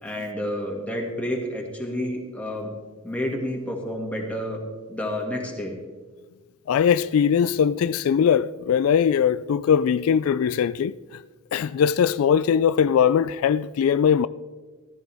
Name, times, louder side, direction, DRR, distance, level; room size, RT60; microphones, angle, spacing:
voice 1, 0.0-2.7 3.0-4.6 4.9-5.8, left 1 dB, 5° left, 2.1 m, -29 dB
voice 2, 6.7-11.0 11.5-14.3, left 7 dB, 75° left, 0.3 m, -20 dB
14.5 x 14.0 x 3.5 m
head